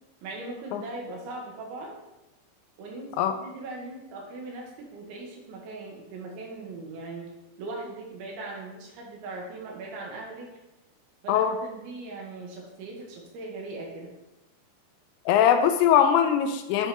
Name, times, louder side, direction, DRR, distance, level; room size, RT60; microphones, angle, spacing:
voice 1, 0.2-2.0 2.8-3.1 3.4-7.3 7.6-10.5 11.2-14.1, right 2 dB, 85° right, -1 dB, 3.7 m, -39 dB
voice 2, 15.3-16.9, left 9 dB, 85° left, 7 dB, 2.7 m, -21 dB
11.0 x 5.1 x 3.0 m, 0.98 s
omnidirectional pair, 5.2 m